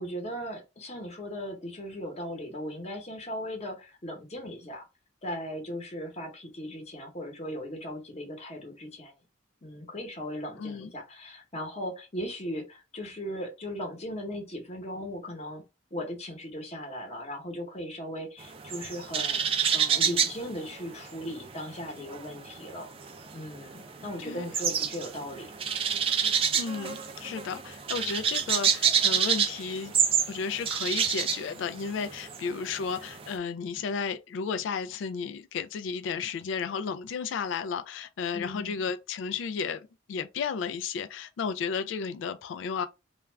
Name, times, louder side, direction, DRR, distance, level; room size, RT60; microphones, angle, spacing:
voice 1, 0.0-4.9 5.2-9.2 9.6-15.6 15.9-19.4 19.7-25.5 38.3-38.8, equal, 35° left, 0.9 m, -38 dB
voice 2, 10.6-10.9 24.2-24.5 26.5-29.9 30.3-42.8, left 6 dB, 70° left, 0.3 m, -33 dB
sound 1, 18.4-21.5 21.7-33.3, right 7 dB, 30° right, 0.3 m, -28 dB
2.3 x 2.2 x 3.2 m
head